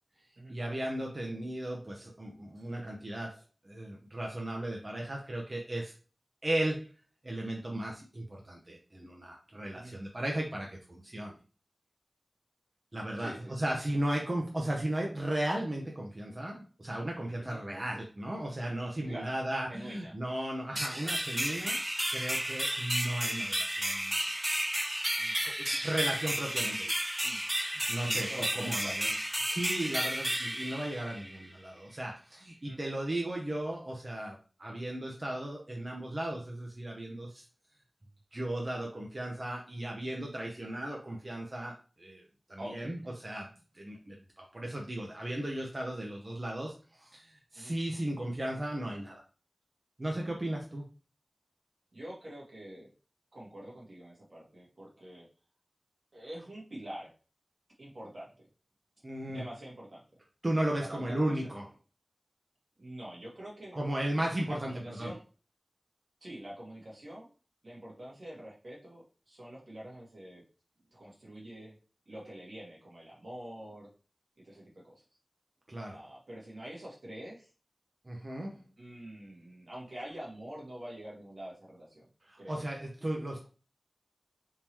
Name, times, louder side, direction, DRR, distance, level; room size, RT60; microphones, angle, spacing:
voice 1, 0.5-5.9 6.4-6.9 7.2-11.3 12.9-21.8 22.1-24.2 25.2-26.9 27.6-29.1 29.4-37.4 38.3-42.2 42.5-43.5 43.7-49.2 50.0-50.9 59.0-59.4 60.4-61.6 63.7-65.1 75.7-76.0 78.1-78.6 82.3-83.5, right 1 dB, 45° right, 0 dB, 0.7 m, -36 dB
voice 2, 13.2-13.7 17.4-17.6 19.1-19.3 19.7-20.2 27.2-27.4 28.0-29.2 32.6-32.9 42.6-43.2 47.5-47.7 51.9-52.9 53.3-55.3 56.1-57.1 57.8-58.3 59.3-60.0 60.8-61.5 62.8-63.8 64.5-65.2 66.2-67.3 67.6-70.4 70.9-71.7 72.0-73.9 74.4-75.0 75.9-77.5 78.8-82.1 82.4-82.6, right 1 dB, 70° right, -4 dB, 1.6 m, -45 dB
sound 1, 20.7-31.5, equal, 15° right, 0.3 m, -32 dB
3.7 x 2.8 x 3.0 m, 0.35 s
wide cardioid pair, 50°, 0 cm